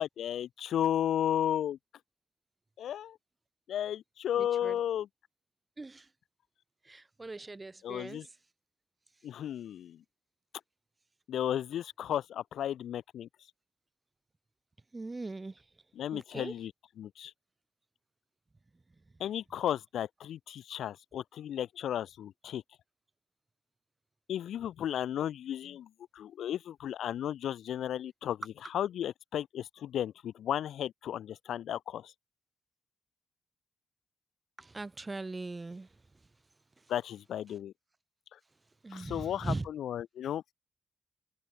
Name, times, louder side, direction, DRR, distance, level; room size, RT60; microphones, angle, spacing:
voice 1, 0.0-1.8 2.8-3.2 3.7-5.1 7.8-8.3 9.2-10.0 11.3-13.3 16.0-16.7 17.0-17.3 19.2-22.6 24.3-28.4 28.7-32.1 36.9-37.7 38.9-40.4, left 10 dB, 85° left, 0.9 m, -34 dB
voice 2, 4.4-4.8 5.8-6.1 6.9-8.2 14.9-15.6 16.1-16.5 34.6-35.9 38.8-39.7, right 3 dB, 15° right, 0.3 m, -40 dB
open air
wide cardioid pair, 170°, 0 cm